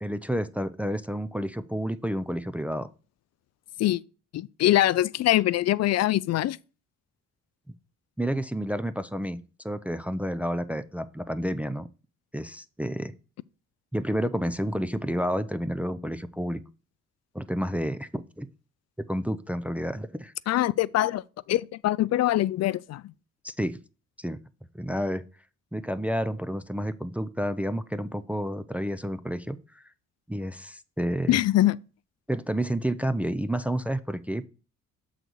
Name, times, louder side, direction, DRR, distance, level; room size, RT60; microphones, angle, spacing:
voice 1, 0.0-2.9 8.2-9.4 9.6-11.9 12.3-13.1 13.9-16.6 17.3-18.5 19.1-20.3 23.4-23.8 24.2-24.4 24.7-25.2 25.7-29.6 30.3-31.4 32.3-34.5, equal, 5° right, 0.4 m, -30 dB
voice 2, 4.3-6.6 20.5-21.2 21.5-23.1 31.3-31.8, left 14 dB, 60° left, 0.4 m, -23 dB
7.8 x 4.0 x 4.5 m
cardioid pair, 90°, 30 cm